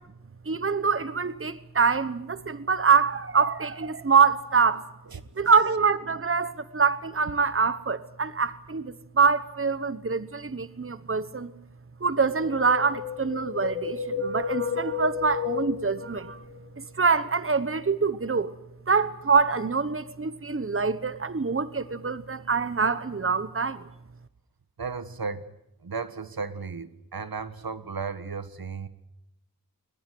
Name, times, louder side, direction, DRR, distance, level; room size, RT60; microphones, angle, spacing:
voice 1, 0.5-4.8 5.4-11.5 12.0-16.4 16.8-18.5 18.9-23.8, right 5 dB, 35° right, 1.1 m, -25 dB
voice 2, 5.1-5.5 24.8-25.5 25.8-28.9, right 5 dB, 80° right, 1.5 m, -35 dB
Wind, 12.3-16.6 16.9-17.0, left 6 dB, 90° left, 3.1 m, -32 dB
21.5 x 20.5 x 9.4 m
wide cardioid pair, 60°, 35 cm